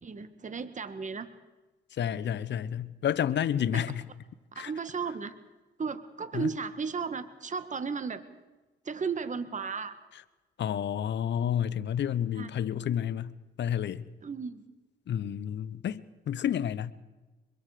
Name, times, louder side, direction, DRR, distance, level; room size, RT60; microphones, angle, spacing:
voice 1, 0.0-1.3 3.7-3.8 4.5-5.3 5.8-8.2 8.8-9.9 12.4-12.5 14.2-14.6, right 5 dB, 40° right, 11 dB, 1.6 m, -34 dB
voice 2, 1.9-4.0 4.6-4.7 6.3-6.5 10.6-13.3 13.6-14.1 15.1-16.9, left 9 dB, 70° left, 16 dB, 1.1 m, -30 dB
24.5 x 22.5 x 5.1 m, 1.2 s
cardioid pair, 70°, 19 cm